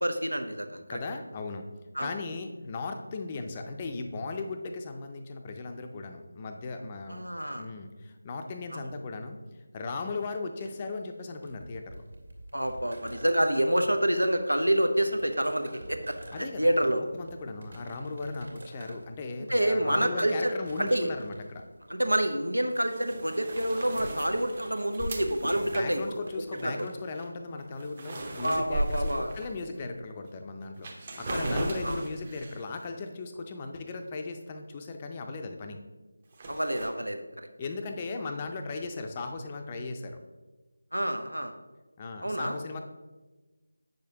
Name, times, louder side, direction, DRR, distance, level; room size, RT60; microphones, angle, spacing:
voice 1, 0.0-1.0 1.9-2.1 7.1-7.7 8.7-8.9 12.5-16.2 16.6-17.0 19.5-20.5 20.8-21.1 21.9-26.2 26.6-26.9 28.4-29.3 31.3-31.5 31.8-32.0 36.5-37.5 40.9-41.5 42.2-42.6, right 1 dB, 85° right, 6 dB, 0.8 m, -28 dB
voice 2, 0.9-1.7 2.0-9.4 9.7-12.0 16.3-16.9 17.1-21.6 25.6-35.8 37.6-40.2 42.0-42.8, left 3 dB, 20° left, 5 dB, 0.5 m, -37 dB
sound 1, 10.6-27.9, right 1 dB, 65° right, 1.8 m, -50 dB
sound 2, 22.7-26.6 27.1-27.3 27.6-29.8 30.3-30.4 30.8-32.7 36.3-36.9, right 1 dB, 30° right, 0.8 m, -36 dB
8.1 x 6.4 x 2.9 m, 1.2 s
figure-of-eight pair, 160°, 0 cm